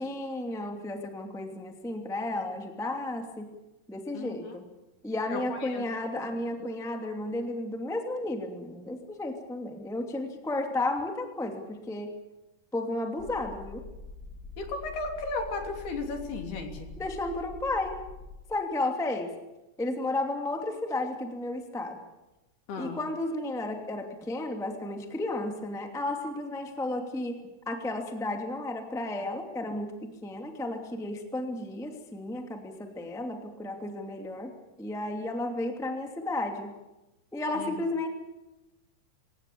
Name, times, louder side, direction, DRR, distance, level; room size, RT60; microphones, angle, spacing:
voice 1, 0.0-3.5 3.9-4.6 5.0-12.1 12.7-13.8 17.0-18.0 18.5-19.3 19.8-22.0 22.8-34.5 34.8-36.7 37.3-38.1, left 2 dB, ahead, 3 dB, 1.4 m, -33 dB
voice 2, 4.1-4.5 5.3-5.8 14.6-16.9 22.7-23.0 37.6-37.8, left 3 dB, 65° left, 4 dB, 5.0 m, -35 dB
sound 1, 13.2-18.5, left 2 dB, 40° left, 1.7 m, -45 dB
27.0 x 17.0 x 8.7 m, 1.0 s
omnidirectional pair, 4.9 m